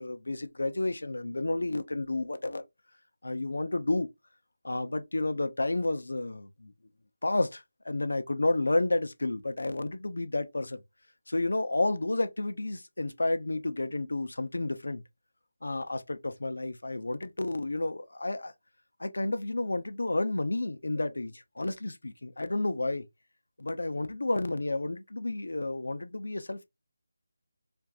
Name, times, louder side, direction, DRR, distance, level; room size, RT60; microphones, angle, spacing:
voice 1, 0.0-2.6 3.2-4.1 4.6-6.7 7.2-10.8 11.3-15.0 15.6-18.5 19.0-23.1 23.6-26.7, left 2 dB, 85° left, 0.7 m, -31 dB
4.5 x 2.5 x 2.4 m
figure-of-eight pair, 175°, 0 cm